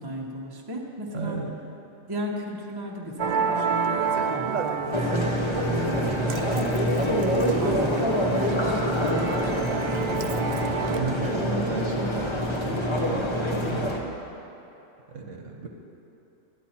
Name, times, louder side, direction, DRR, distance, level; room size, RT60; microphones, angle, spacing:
voice 1, 0.0-1.4 2.1-6.9 7.5-10.4, equal, 20° right, -2 dB, 1.1 m, -35 dB
voice 2, 1.1-1.6 10.9-13.9 15.1-15.7, right 3 dB, 70° right, 1 dB, 1.2 m, -33 dB
Musical instrument, 3.2-11.0, right 6 dB, 90° right, 0.3 m, -30 dB
sound 1, 4.9-14.0, equal, 25° left, 0.9 m, -26 dB
12.5 x 10.0 x 4.4 m, 2.9 s
omnidirectional pair, 1.4 m